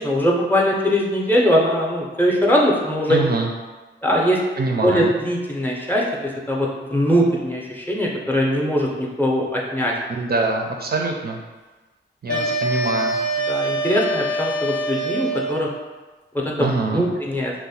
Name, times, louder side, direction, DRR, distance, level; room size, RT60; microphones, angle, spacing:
voice 1, 0.0-3.3 4.0-4.4 4.8-6.0 6.5-9.9 12.3-12.5 13.5-15.7 16.4-17.5, equal, 10° left, -2 dB, 0.5 m, -21 dB
voice 2, 3.1-3.5 4.6-5.1 10.1-11.4 12.2-13.2 16.6-17.1, right 3 dB, 55° right, 1 dB, 0.4 m, -24 dB
sound 1, 12.3-15.8, right 1 dB, 65° left, 0.6 m, -24 dB
2.9 x 2.1 x 4.1 m, 1.2 s
wide cardioid pair, 105°, 20 cm